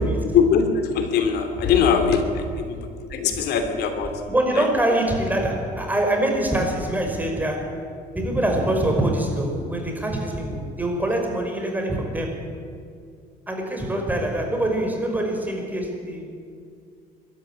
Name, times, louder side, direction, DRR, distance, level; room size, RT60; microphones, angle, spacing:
voice 1, 0.3-4.7, left 6 dB, 75° left, 6 dB, 3.0 m, -22 dB
voice 2, 4.3-7.9 8.1-12.4 13.5-16.3, right 1 dB, 10° right, 2 dB, 5.4 m, -24 dB
22.5 x 13.5 x 9.9 m, 2.3 s
cardioid pair, 110°, 17 cm